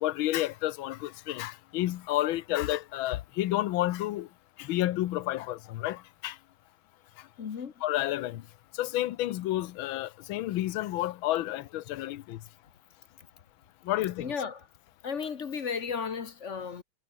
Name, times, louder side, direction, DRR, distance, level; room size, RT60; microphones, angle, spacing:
voice 1, 0.0-4.3 4.6-6.4 7.8-8.4 8.8-12.4 13.9-14.3, left 15 dB, 80° left, 1.6 m, -30 dB
voice 2, 7.4-7.7 14.2-14.7 15.0-16.8, left 6 dB, 45° left, 1.2 m, -34 dB
omnidirectional pair, 2.2 m